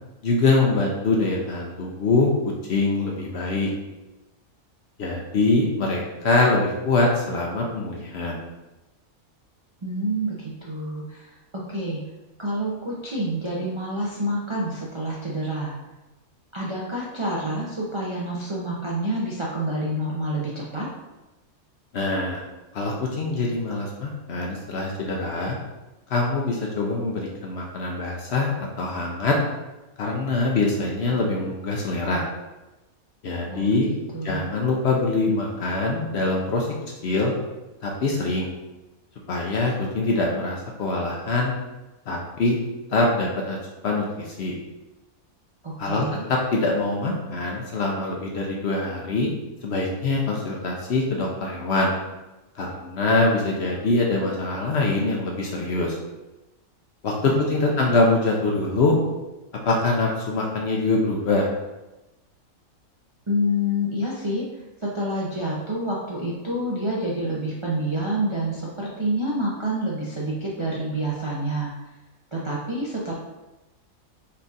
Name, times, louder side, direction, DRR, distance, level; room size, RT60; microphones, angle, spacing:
voice 1, 0.2-2.3 2.7-3.7 5.0-8.4 21.9-22.4 22.7-25.6 26.1-29.3 30.0-32.2 33.2-33.9 34.2-36.7 37.0-37.3 37.8-38.5 39.3-41.5 42.1-42.6 42.9-43.6 43.8-44.5 45.8-49.3 49.6-51.9 52.6-56.0 57.0-59.0 59.6-61.5, left 3 dB, 60° left, -2 dB, 0.7 m, -24 dB
voice 2, 9.8-12.0 12.4-15.7 16.5-20.9 33.5-33.7 34.1-34.4 45.6-46.3 57.2-57.9 63.3-64.5 64.8-71.7 72.3-73.1, equal, 45° right, -6 dB, 0.4 m, -28 dB
4.3 x 2.4 x 4.0 m, 1.0 s
omnidirectional pair, 1.5 m